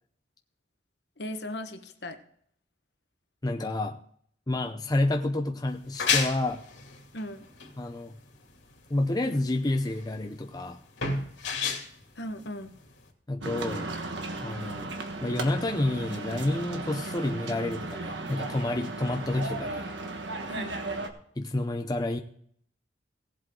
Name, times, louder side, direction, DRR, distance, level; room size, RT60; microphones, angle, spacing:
voice 1, 1.2-2.2 7.1-7.5 12.2-12.7 20.5-20.8, left 1 dB, 65° left, 7 dB, 1.3 m, -37 dB
voice 2, 3.4-4.0 4.5-6.6 7.8-8.2 8.9-10.8 13.3-13.9 14.4-14.9 15.2-19.9 21.4-22.2, left 2 dB, 20° left, 5 dB, 0.6 m, -29 dB
sound 1, 5.7-13.1, left 5 dB, 90° left, 2.5 m, -32 dB
sound 2, 13.4-21.1, right 2 dB, 75° right, 1.4 m, -36 dB
17.5 x 7.8 x 3.8 m, 0.62 s
head